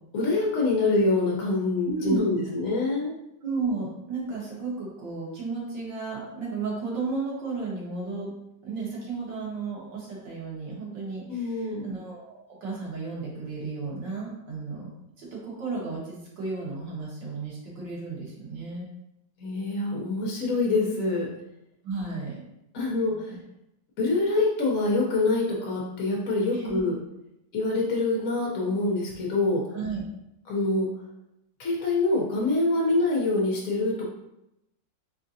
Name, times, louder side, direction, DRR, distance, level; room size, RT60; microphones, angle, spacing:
voice 1, 0.1-3.1 11.3-11.8 19.4-21.3 22.7-23.3 24.0-26.9 27.5-29.6 30.5-30.9 31.6-34.1, left 2 dB, 60° left, -3 dB, 1.1 m, -25 dB
voice 2, 1.8-2.2 3.4-8.3 8.6-14.9 15.2-18.8 21.8-22.4 23.1-23.4 26.5-26.8 29.7-30.0, right 4 dB, 80° right, -5 dB, 2.2 m, -33 dB
4.5 x 3.7 x 2.7 m, 0.87 s
omnidirectional pair, 1.9 m